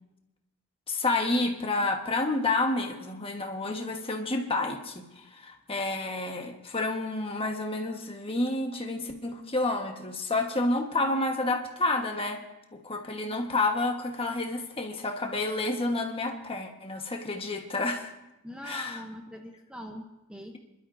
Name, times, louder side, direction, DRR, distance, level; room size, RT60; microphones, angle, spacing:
voice 1, 0.9-12.4 12.7-18.1 18.6-19.0, left 2 dB, 25° left, 3 dB, 1.3 m, -29 dB
voice 2, 18.4-20.6, equal, 5° right, 2 dB, 0.8 m, -42 dB
28.0 x 12.0 x 2.6 m, 0.93 s
head